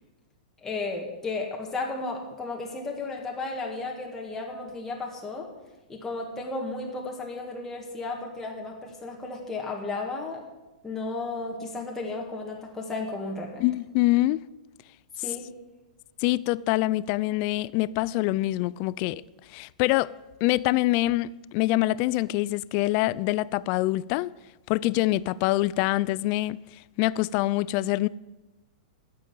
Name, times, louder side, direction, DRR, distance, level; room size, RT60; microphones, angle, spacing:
voice 1, 0.6-5.5 5.9-10.4 10.8-13.6 15.2-15.5, left 3 dB, 10° left, 1.6 m, -34 dB
voice 2, 13.6-14.4 16.2-19.2 19.5-20.1 20.4-24.3 24.7-26.6 27.0-28.1, left 18 dB, 40° left, 0.3 m, -25 dB
9.0 x 7.6 x 8.6 m
hypercardioid pair, 150°, 4 cm